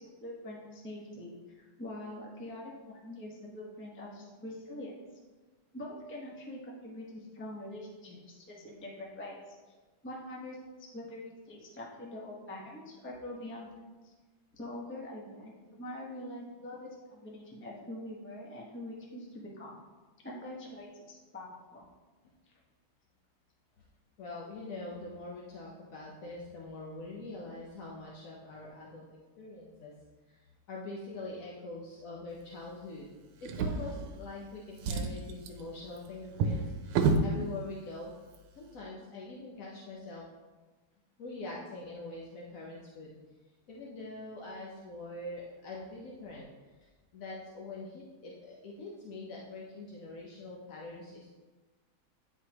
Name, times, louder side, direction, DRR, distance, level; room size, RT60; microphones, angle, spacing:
voice 1, 0.0-4.9 5.7-9.7 10.0-13.7 14.0-14.1 14.5-19.8 20.2-21.9, left 1 dB, 10° left, -3 dB, 0.5 m, -44 dB
voice 2, 24.2-29.9 30.3-33.1 33.4-38.1 38.5-40.3 41.2-43.1 43.7-46.5 46.8-51.3, left 2 dB, 60° left, -3 dB, 0.9 m, -44 dB
Drawer open or close, 33.4-34.4 34.7-37.3 38.2-38.4 38.7-38.8, right 4 dB, 85° right, 1.5 m, -31 dB
9.2 x 4.7 x 2.9 m, 1.3 s
omnidirectional pair, 2.3 m